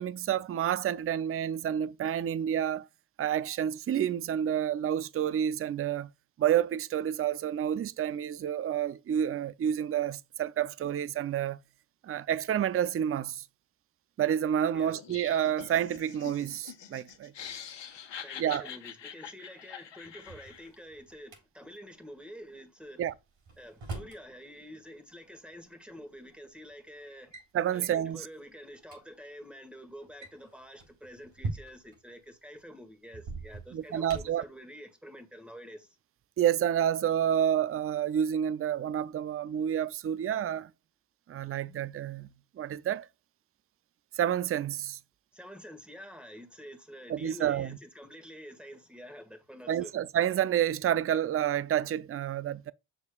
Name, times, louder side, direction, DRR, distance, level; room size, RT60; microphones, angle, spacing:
voice 1, 0.0-2.9 3.2-6.1 6.4-11.6 12.0-13.4 14.2-17.3 18.4-18.7 23.0-23.1 27.5-28.3 33.7-34.4 36.4-40.7 41.3-42.3 42.6-43.1 44.2-45.0 47.1-47.8 49.7-52.7, right 10 dB, 30° right, 0.4 m, -29 dB
Laughter, 14.9-20.8, left 8 dB, 60° left, 1.3 m, -45 dB
voice 2, 18.2-23.0 23.6-27.3 27.7-35.9 45.3-49.9, equal, ahead, 1.7 m, -48 dB
Drawer open or close, 20.0-21.4 23.1-24.2 25.5-25.6 26.4-26.7 27.0-27.5 27.8-28.1 28.5-28.6 28.8-29.0 30.0-32.0 33.1-34.5, right 3 dB, 75° right, 3.7 m, -41 dB
7.0 x 6.6 x 2.2 m
cardioid pair, 110°, 47 cm